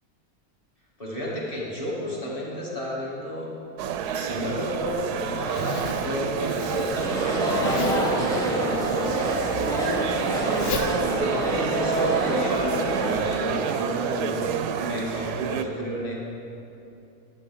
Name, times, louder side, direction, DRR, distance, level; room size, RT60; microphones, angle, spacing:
voice 1, 1.0-3.5 4.1-9.7 11.1-14.5 14.8-16.3, equal, 20° left, -6 dB, 2.0 m, -32 dB
sound 1, 3.8-15.6, right 7 dB, 85° right, 1.1 m, -28 dB
Zipper (clothing), 4.7-12.2, left 4 dB, 50° left, 0.8 m, -36 dB
sound 2, 6.9-13.2, equal, 5° left, 1.0 m, -27 dB
12.0 x 9.0 x 3.8 m, 2.8 s
omnidirectional pair, 1.6 m